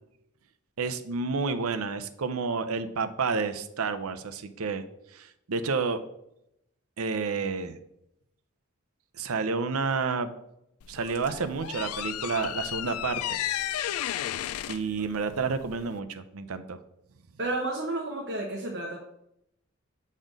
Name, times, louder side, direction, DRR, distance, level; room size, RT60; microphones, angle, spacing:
voice 1, 0.8-4.8 5.1-6.0 7.0-7.7 9.2-10.3 10.9-13.4 14.7-16.8, right 4 dB, 85° right, 10 dB, 0.6 m, -30 dB
sound 1, 10.8-16.0, left 12 dB, 90° left, 0.3 m, -33 dB
voice 2, 17.4-19.0, right 2 dB, 55° right, 0 dB, 1.0 m, -31 dB
7.4 x 4.3 x 5.1 m, 0.80 s
head